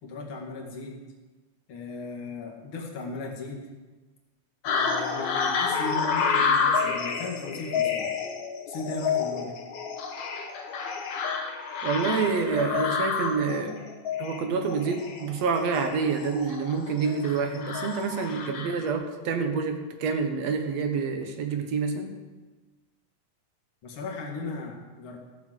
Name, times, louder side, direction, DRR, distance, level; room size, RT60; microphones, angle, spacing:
voice 1, 0.0-1.0 1.7-3.7 4.7-8.2 8.7-9.6 23.8-25.2, left 3 dB, 45° left, -1 dB, 2.5 m, -36 dB
sound 1, 4.6-18.9, left 5 dB, 75° left, 2.6 m, -29 dB
voice 2, 11.8-13.8 14.2-22.1, right 5 dB, 65° right, 6 dB, 2.2 m, -27 dB
14.0 x 6.9 x 7.7 m, 1.3 s
omnidirectional pair, 3.4 m